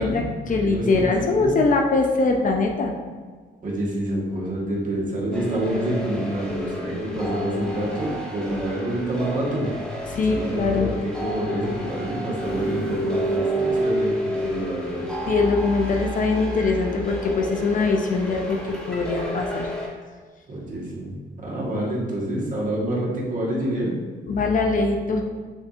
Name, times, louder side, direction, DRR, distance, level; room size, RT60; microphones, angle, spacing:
voice 1, 0.0-2.9 10.1-10.9 15.3-19.7 24.3-25.2, left 3 dB, 40° left, 2 dB, 0.5 m, -22 dB
voice 2, 0.6-1.0 1.4-1.5 3.6-9.7 10.1-15.0 20.5-23.9, right 1 dB, 40° right, -4 dB, 1.3 m, -27 dB
sound 1, 5.3-19.9, equal, 5° left, 1.3 m, -30 dB
7.1 x 2.6 x 2.4 m, 1.5 s
cardioid pair, 90°, 20 cm